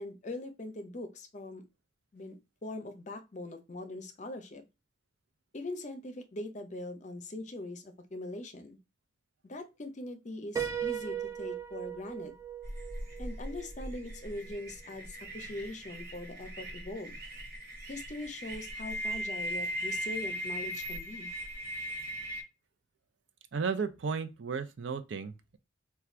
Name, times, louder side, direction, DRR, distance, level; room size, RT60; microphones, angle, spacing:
voice 1, 0.0-1.6 2.1-2.3 2.6-4.6 5.5-8.8 9.4-12.3 13.2-17.2 17.9-21.3, left 2 dB, 40° left, 0.6 m, -41 dB
Piano, 10.6-14.3, right 9 dB, 20° right, 0.4 m, -38 dB
sound 1, 12.6-22.4, equal, 55° right, 1.1 m, -39 dB
voice 2, 23.5-25.6, right 5 dB, 80° right, 0.5 m, -34 dB
4.3 x 2.3 x 2.3 m
head